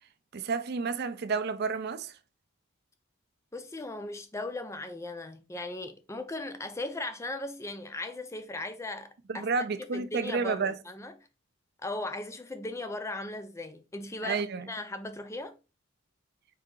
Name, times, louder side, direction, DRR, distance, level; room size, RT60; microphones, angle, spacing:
voice 1, 0.3-2.2 9.3-10.8 14.2-14.7, right 4 dB, 50° right, 0.4 m, -30 dB
voice 2, 3.5-9.5 9.9-11.1 11.8-15.5, left 2 dB, 15° left, 0.4 m, -38 dB
4.8 x 2.7 x 3.7 m
head